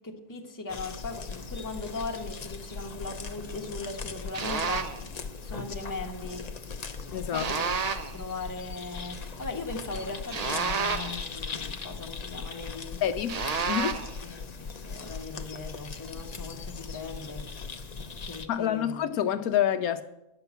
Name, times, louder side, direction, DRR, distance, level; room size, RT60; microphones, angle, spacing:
voice 1, 0.0-4.9 5.4-6.5 7.3-7.7 8.1-13.0 14.2-17.5 18.2-19.1, left 3 dB, 15° left, 1.1 m, -39 dB
sound 1, 0.7-18.5, left 4 dB, 45° left, 0.5 m, -39 dB
sound 2, 4.3-5.0 7.3-8.2 10.3-11.3 13.3-14.2, right 5 dB, 60° right, 0.4 m, -30 dB
voice 2, 7.1-7.5 13.0-13.4 13.7-14.0 18.5-20.0, left 10 dB, 75° left, 1.1 m, -27 dB
10.5 x 6.9 x 8.1 m
omnidirectional pair, 1.6 m